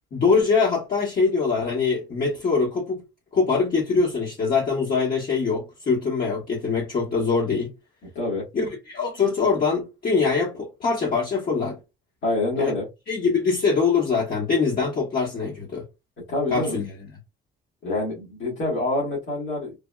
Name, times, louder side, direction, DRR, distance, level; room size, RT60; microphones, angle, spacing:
voice 1, 0.1-3.0 3.3-7.7 8.5-11.8 12.6-12.7 13.1-15.8 16.5-16.9, left 4 dB, 50° left, 1.1 m, -23 dB
voice 2, 8.0-8.4 12.2-12.8 16.3-16.8 17.8-19.7, left 2 dB, 75° left, 1.7 m, -26 dB
3.4 x 2.2 x 2.2 m
cardioid pair, 90°, 20 cm